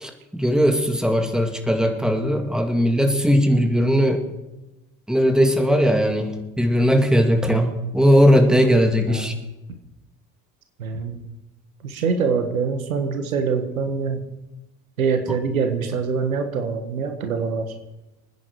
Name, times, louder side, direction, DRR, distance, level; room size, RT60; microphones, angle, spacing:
voice 1, 0.0-4.2 5.1-9.3, equal, ahead, 5 dB, 2.2 m, -19 dB
voice 2, 9.1-9.4 10.8-11.3 11.8-14.2 15.0-17.7, right 5 dB, 80° right, 7 dB, 1.7 m, -24 dB
25.0 x 9.9 x 4.7 m, 1.0 s
figure-of-eight pair, 65°, 41 cm